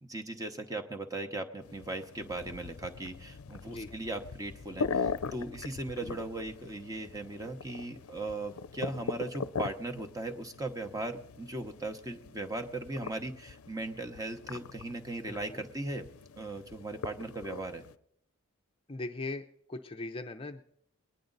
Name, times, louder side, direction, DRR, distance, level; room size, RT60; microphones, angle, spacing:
voice 1, 0.0-16.1 16.4-17.8, right 2 dB, 15° right, 5 dB, 0.9 m, -38 dB
sound 1, 1.6-18.0, left 5 dB, 75° left, 0.5 m, -41 dB
voice 2, 15.2-15.6 18.9-20.6, left 2 dB, 25° left, 5 dB, 0.5 m, -40 dB
21.5 x 10.0 x 3.9 m, 0.71 s
head